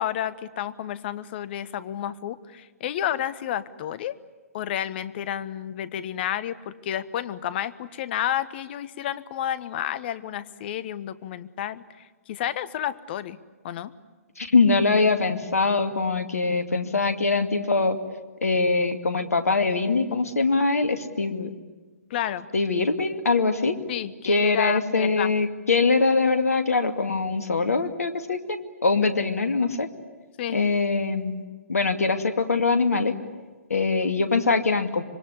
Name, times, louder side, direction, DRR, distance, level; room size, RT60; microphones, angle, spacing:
voice 1, 0.0-4.2 4.5-13.4 13.6-13.9 22.1-22.5 23.9-25.3 30.4-30.6, left 11 dB, 45° left, 16 dB, 1.2 m, -31 dB
voice 2, 14.4-18.0 18.4-21.5 22.5-23.8 24.2-28.6 28.8-29.9 30.5-31.4 31.7-33.1 33.7-35.0, left 3 dB, 80° left, 8 dB, 2.4 m, -23 dB
26.0 x 23.5 x 9.8 m, 1.3 s
figure-of-eight pair, 125°, 8 cm